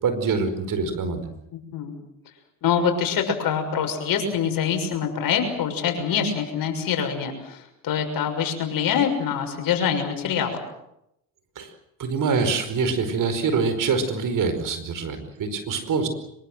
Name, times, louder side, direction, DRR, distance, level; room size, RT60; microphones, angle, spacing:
voice 1, 0.0-1.2 11.5-11.7 12.0-16.1, right 5 dB, 55° right, 10 dB, 5.0 m, -25 dB
voice 2, 1.5-1.9 2.6-10.6, left 7 dB, 60° left, 5 dB, 6.5 m, -25 dB
24.5 x 23.0 x 7.9 m, 0.81 s
hypercardioid pair, 65°, 38 cm